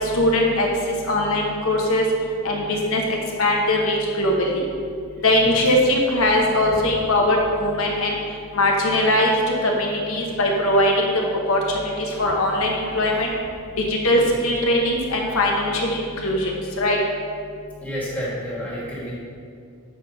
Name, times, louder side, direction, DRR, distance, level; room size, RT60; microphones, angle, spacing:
voice 1, 0.1-0.7 1.1-2.0 2.4-4.6 5.2-8.2 8.5-9.4 9.6-11.1 11.5-11.9 12.2-13.3 13.9-17.0, left 1 dB, 80° left, -1 dB, 1.1 m, -20 dB
voice 2, 12.8-13.3 17.8-19.2, equal, 10° left, -7 dB, 1.7 m, -31 dB
7.1 x 4.7 x 5.3 m, 2.3 s
head